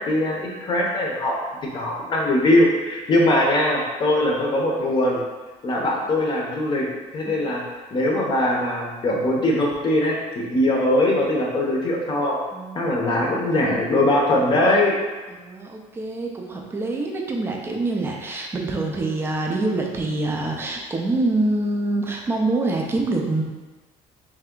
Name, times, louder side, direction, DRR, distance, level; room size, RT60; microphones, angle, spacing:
voice 1, 0.0-5.2 5.6-6.9 7.1-7.6 7.9-12.4 12.7-14.9, left 1 dB, 30° left, -1 dB, 0.7 m, -21 dB
voice 2, 12.5-13.5 15.3-23.4, right 2 dB, 15° right, 1 dB, 0.5 m, -26 dB
3.4 x 3.3 x 3.7 m, 1.3 s
cardioid pair, 160°, 15 cm